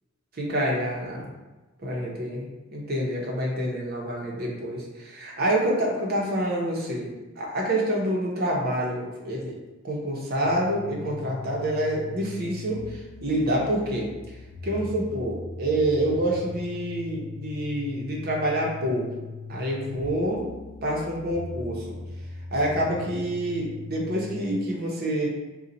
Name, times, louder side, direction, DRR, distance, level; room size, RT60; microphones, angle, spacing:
voice 1, 0.4-1.3 1.8-9.5 9.8-14.1 14.6-19.1 19.5-20.4 20.8-22.0 22.5-25.3, right 1 dB, 50° right, -2 dB, 1.0 m, -27 dB
sound 1, 10.4-24.4, left 3 dB, 70° left, 0.4 m, -39 dB
4.0 x 2.4 x 4.1 m, 1.1 s
head